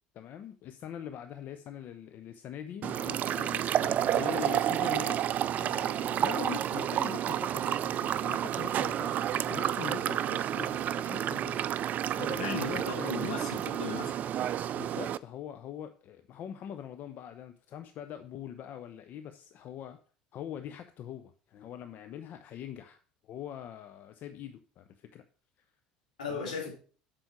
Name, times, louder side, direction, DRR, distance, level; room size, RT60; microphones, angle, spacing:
voice 1, 0.1-3.7 4.0-11.6 12.1-13.4 14.7-20.0 20.3-25.2 26.3-26.7, left 9 dB, 50° left, 0.7 m, -43 dB
sound 1, 2.8-15.2, right 10 dB, 45° right, 0.4 m, -30 dB
voice 2, 12.4-14.1 26.2-26.7, left 4 dB, 80° left, 3.0 m, -37 dB
8.0 x 6.1 x 5.9 m
figure-of-eight pair, 65°, 4 cm